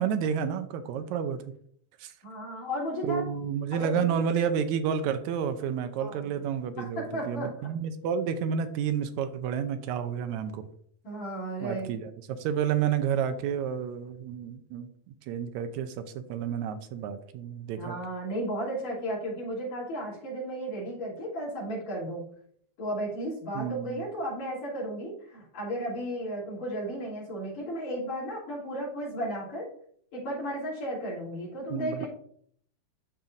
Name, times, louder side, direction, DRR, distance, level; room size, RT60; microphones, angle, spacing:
voice 1, 0.0-1.4 2.0-2.1 3.0-10.7 11.6-17.9 23.5-24.0 31.7-32.1, right 8 dB, 80° right, 10 dB, 1.9 m, -30 dB
voice 2, 2.2-3.2 3.7-4.2 6.0-6.3 6.8-7.7 11.0-11.9 17.8-22.2 22.8-29.7 30.1-32.1, equal, 65° left, -6 dB, 4.5 m, -34 dB
12.5 x 4.4 x 2.6 m, 0.62 s
omnidirectional pair, 3.4 m